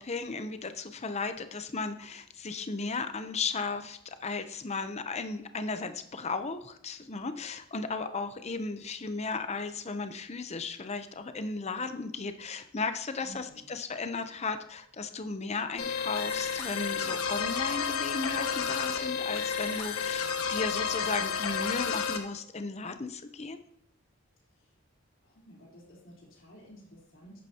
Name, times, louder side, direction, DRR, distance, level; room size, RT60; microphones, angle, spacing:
voice 1, 0.0-23.6, left 4 dB, 30° left, 9 dB, 0.7 m, -35 dB
voice 2, 13.2-13.8 25.2-27.4, right 1 dB, 60° left, -4 dB, 3.8 m, -52 dB
sound 1, 15.8-22.2, left 6 dB, 85° left, 1.1 m, -31 dB
11.5 x 8.8 x 2.9 m, 0.74 s
head